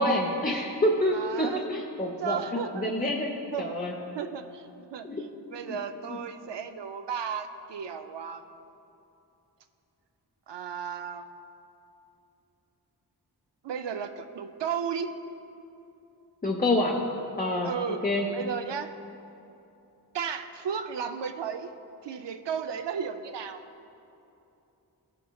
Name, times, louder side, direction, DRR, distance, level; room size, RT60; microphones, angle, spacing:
voice 1, 0.0-2.4 2.7-3.3 3.6-4.0 5.0-5.2 5.6-5.8 16.4-17.0 17.4-17.7 18.0-18.3, left 1 dB, 20° left, -1 dB, 0.6 m, -27 dB
voice 2, 1.1-1.6 2.2-2.9 3.5-3.8 4.1-8.4 10.5-11.3 13.6-15.1 17.6-18.0 18.3-18.9 20.1-21.7 22.0-23.6, right 7 dB, 85° right, 8 dB, 0.5 m, -34 dB
16.0 x 6.0 x 2.3 m, 2.8 s
wide cardioid pair, 85°, 41 cm